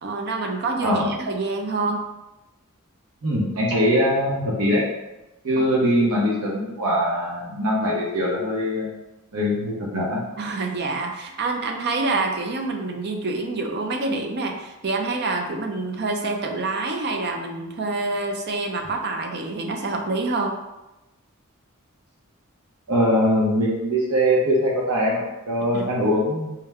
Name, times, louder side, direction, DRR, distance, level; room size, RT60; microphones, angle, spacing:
voice 1, 0.0-2.0 5.6-5.7 10.4-20.6 25.7-25.9, right 3 dB, 50° right, 3 dB, 0.5 m, -27 dB
voice 2, 3.2-4.8 5.4-8.9 9.3-10.2 22.9-26.5, equal, 75° right, -4 dB, 0.9 m, -22 dB
4.5 x 2.1 x 3.5 m, 0.99 s
head